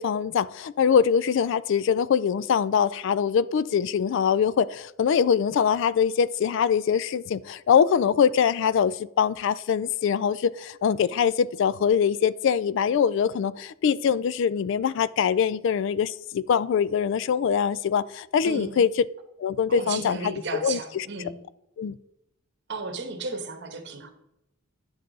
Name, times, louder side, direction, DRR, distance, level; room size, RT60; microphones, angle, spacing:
voice 1, 0.0-18.9 19.4-20.3 20.6-21.0 21.8-22.0, left 7 dB, 60° left, 0.3 m, -23 dB
voice 2, 18.4-18.9 19.7-21.4 22.7-24.1, right 3 dB, 55° right, 1.2 m, -34 dB
9.7 x 6.6 x 3.9 m
head